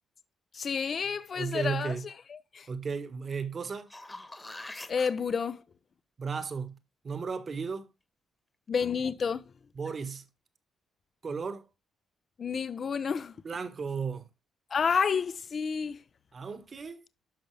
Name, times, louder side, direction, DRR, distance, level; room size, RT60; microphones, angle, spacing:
voice 1, 0.5-2.7 4.9-5.6 8.7-9.4 12.4-13.3 14.7-16.0, left 6 dB, 45° left, 0.7 m, -30 dB
voice 2, 1.3-2.0 2.7-3.9 6.2-6.8 7.0-7.9 9.7-10.2 11.2-11.7 13.4-14.3 16.3-17.0, right 5 dB, 40° right, 1.4 m, -34 dB
sound 1, 3.6-5.1 9.9-10.0, left 2 dB, 15° left, 1.3 m, -44 dB
10.5 x 5.9 x 3.3 m
cardioid pair, 90°, 0 cm